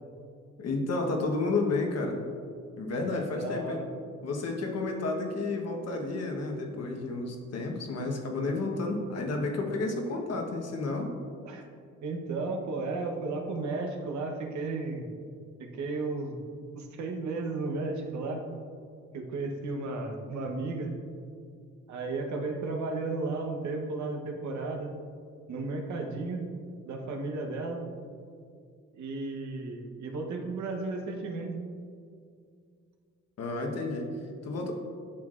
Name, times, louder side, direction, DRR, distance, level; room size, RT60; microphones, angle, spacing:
voice 1, 0.6-2.2 2.8-3.8 4.2-11.1 33.4-34.1 34.4-34.7, left 3 dB, 55° left, 2 dB, 1.2 m, -31 dB
voice 2, 3.4-3.8 11.4-11.7 12.0-15.0 15.6-16.4 16.7-18.4 19.1-21.0 21.9-24.9 25.5-26.5 26.8-27.9 28.9-31.6, right 3 dB, 70° right, 3 dB, 1.0 m, -34 dB
10.0 x 6.0 x 2.5 m, 2.2 s
cardioid pair, 90°, 30 cm